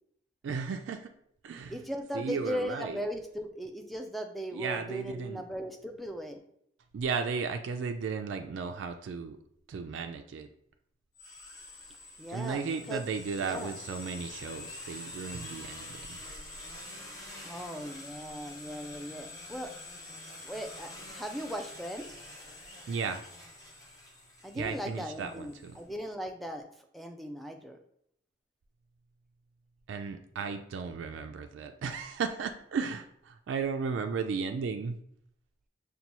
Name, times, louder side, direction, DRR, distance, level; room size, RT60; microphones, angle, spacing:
voice 1, 0.4-1.1 1.4-1.8 2.1-3.0 4.5-5.4 6.9-9.4 9.7-10.5 12.3-16.2 22.9-23.2 24.5-25.8 29.9-35.0, right 5 dB, 85° right, 6 dB, 0.3 m, -35 dB
voice 2, 1.7-6.4 12.2-13.0 13.4-13.7 17.4-19.7 20.4-22.2 24.4-26.6 26.9-27.8, equal, ahead, 4 dB, 0.3 m, -38 dB
Hexacopter drone flight short, 11.1-25.8, left 2 dB, 20° left, 0.8 m, -46 dB
5.3 x 2.2 x 2.9 m, 0.70 s
head